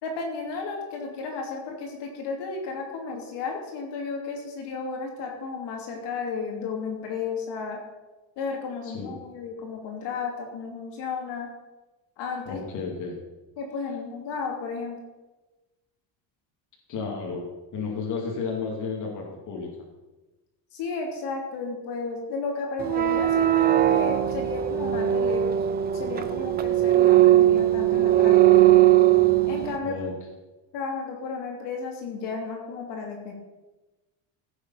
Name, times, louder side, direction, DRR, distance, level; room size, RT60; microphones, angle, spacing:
voice 1, 0.0-7.8 8.4-11.5 12.2-12.6 13.6-15.0 20.7-25.6 25.9-28.7 29.5-30.1 30.7-33.3, left 4 dB, 60° left, 1 dB, 2.9 m, -33 dB
voice 2, 12.5-13.2 16.9-17.5 17.7-19.7 29.8-30.1, left 5 dB, 40° left, -2 dB, 2.6 m, -32 dB
sound 1, 22.8-29.8, right 13 dB, 25° right, 0.3 m, -19 dB
15.5 x 7.8 x 5.7 m, 1.1 s
cardioid pair, 170°, 47 cm